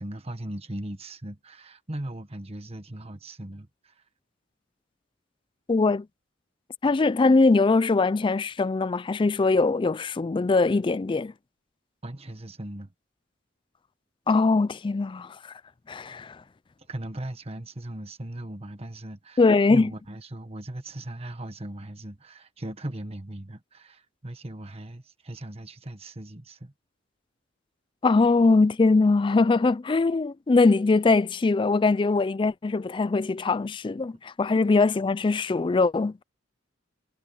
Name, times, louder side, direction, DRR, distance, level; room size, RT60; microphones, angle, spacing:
voice 1, 0.0-4.0 6.8-7.0 12.0-12.9 16.1-16.2 16.9-19.4 19.7-26.7, right 1 dB, 30° right, 1.5 m, -38 dB
voice 2, 5.7-6.1 6.8-11.3 14.3-15.4 15.9-16.4 19.4-19.9 28.0-36.1, left 3 dB, 25° left, 0.4 m, -22 dB
head